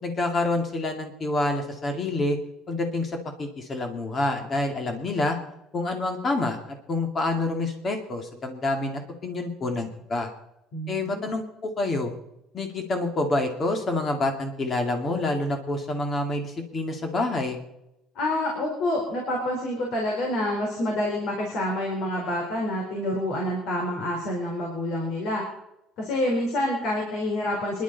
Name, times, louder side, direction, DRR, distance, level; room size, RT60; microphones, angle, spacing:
voice 1, 0.0-2.4 2.7-5.4 5.7-10.3 10.9-12.1 12.5-17.6, left 2 dB, 25° left, 5 dB, 2.3 m, -27 dB
voice 2, 10.7-11.3 18.2-25.4 26.0-27.8, left 1 dB, 55° left, 0 dB, 4.0 m, -27 dB
26.5 x 11.5 x 4.1 m, 0.88 s
cardioid pair, 160°, 0 cm